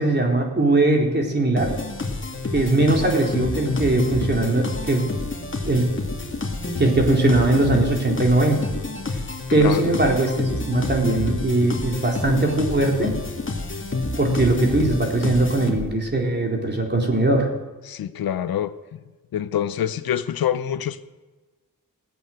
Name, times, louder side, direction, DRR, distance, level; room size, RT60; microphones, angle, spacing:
voice 1, 0.0-1.7 2.5-5.1 5.7-5.9 6.8-8.7 9.5-13.1 14.2-17.5, right 2 dB, 30° right, 0 dB, 4.0 m, -20 dB
sound 1, 1.6-16.1, left 2 dB, 35° left, 2.4 m, -28 dB
voice 2, 9.5-9.9 17.8-19.0 19.3-21.1, left 10 dB, 85° left, 14 dB, 0.7 m, -26 dB
17.5 x 8.4 x 7.8 m, 1.2 s
cardioid pair, 60°, 35 cm